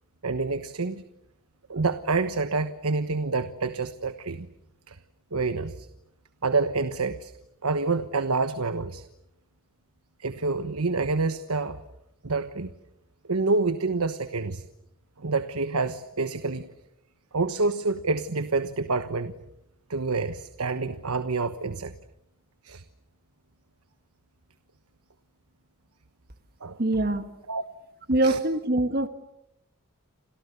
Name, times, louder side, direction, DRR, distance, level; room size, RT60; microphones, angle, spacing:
voice 1, 0.2-1.0 1.7-4.5 4.9-5.0 5.3-5.9 6.4-7.3 7.6-9.0 10.2-11.8 12.2-12.7 13.3-14.6 15.2-16.7 17.3-19.4 19.9-21.9 22.6-22.8 26.6-26.8 27.5-27.6 28.2-28.4, right 3 dB, 75° right, 10 dB, 1.2 m, -27 dB
voice 2, 26.8-27.3 28.1-29.1, right 1 dB, 45° right, 9 dB, 1.7 m, -24 dB
30.0 x 27.5 x 6.9 m, 0.86 s
head